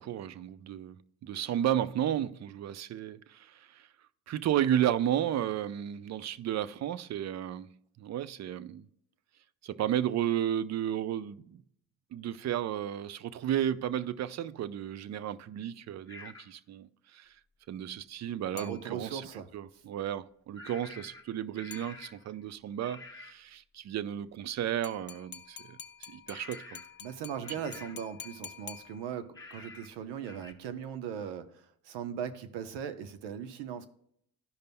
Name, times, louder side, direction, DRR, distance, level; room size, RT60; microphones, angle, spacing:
voice 1, 0.0-3.9 4.3-8.8 9.6-11.6 12.1-17.3 17.7-19.3 19.5-25.8 26.1-26.8, right 11 dB, 40° right, 0.5 m, -33 dB
sound 1, 16.1-16.5 20.5-22.3 22.8-23.4 26.3-27.0 27.4-28.1 29.3-29.9 30.2-30.5, left 3 dB, 10° left, 1.3 m, -49 dB
voice 2, 18.5-19.8 27.0-33.9, right 8 dB, 75° right, 0.9 m, -39 dB
sound 2, 18.6-19.4 21.7-22.5 24.8-29.5, left 7 dB, 25° left, 0.6 m, -48 dB
13.0 x 5.2 x 2.2 m
supercardioid pair, 80°, 42 cm